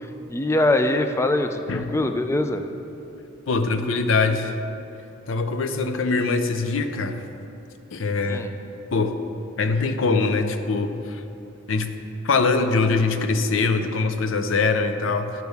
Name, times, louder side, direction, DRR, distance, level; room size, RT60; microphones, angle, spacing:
voice 1, 0.0-2.6 8.3-8.5, left 1 dB, 15° left, 7 dB, 0.3 m, -23 dB
voice 2, 3.5-4.6 5.3-7.2 7.9-8.5 8.9-9.2 9.6-11.2 11.7-11.9 12.2-15.4, left 3 dB, 80° left, 8 dB, 0.5 m, -23 dB
10.5 x 6.3 x 3.4 m, 2.9 s
head